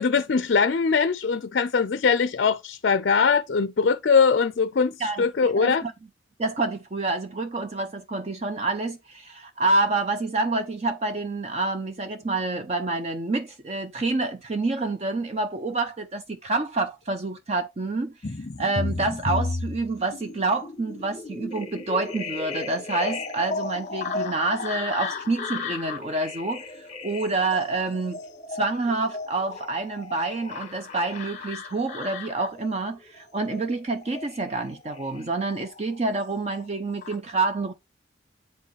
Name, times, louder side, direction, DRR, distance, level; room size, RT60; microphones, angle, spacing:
voice 1, 0.0-5.8, left 5 dB, 55° left, 0.4 m, -22 dB
voice 2, 5.0-5.9 6.4-18.1 18.6-28.2 28.5-37.7, right 3 dB, 35° right, 0.5 m, -28 dB
sound 1, 18.2-36.0 36.3-37.2, left 3 dB, 35° left, 0.9 m, -34 dB
7.9 x 4.8 x 3.1 m
head